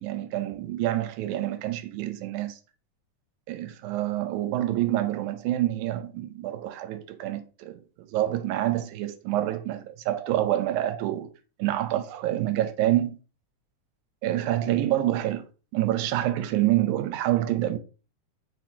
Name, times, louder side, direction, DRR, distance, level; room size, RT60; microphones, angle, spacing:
voice 1, 0.0-2.6 3.5-11.3 11.6-13.2 14.2-15.5 15.7-17.8, right 13 dB, 80° right, 1.9 m, -27 dB
4.4 x 4.2 x 2.7 m
omnidirectional pair, 3.7 m